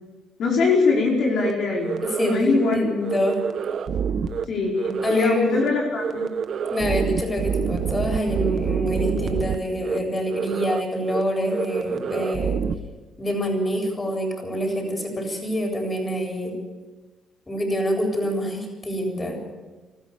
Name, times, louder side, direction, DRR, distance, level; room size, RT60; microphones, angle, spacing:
voice 1, 0.4-2.8 4.5-6.2, left 4 dB, 70° left, -2 dB, 5.0 m, -22 dB
sound 1, 1.4-1.5 1.8-2.3 2.6-2.7 3.0-4.4 4.8-5.3 5.5-5.7 6.0-9.6 9.8-10.0 10.3-10.8 11.1-11.2 11.5-12.7, right 7 dB, 60° right, 1.1 m, -27 dB
voice 2, 2.0-3.4 5.0-5.6 6.7-12.6 13.2-16.5 17.5-19.4, equal, 20° left, 2 dB, 7.7 m, -26 dB
25.0 x 14.5 x 7.1 m, 1.2 s
cardioid pair, 90°, 0 cm